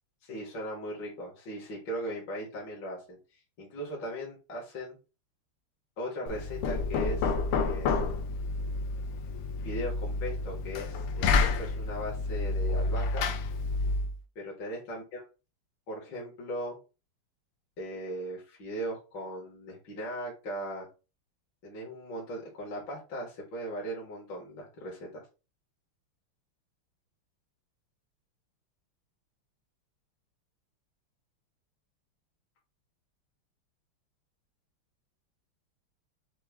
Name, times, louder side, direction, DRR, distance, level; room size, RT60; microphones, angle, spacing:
voice 1, 0.2-5.0 6.0-8.4 9.6-13.3 14.3-15.2 15.9-16.8 17.8-20.9 21.6-25.3, equal, 60° left, -2 dB, 1.8 m, -38 dB
Knock, 6.3-14.2, left 4 dB, 85° left, 1.6 m, -29 dB
6.0 x 2.2 x 3.4 m, 0.31 s
omnidirectional pair, 2.4 m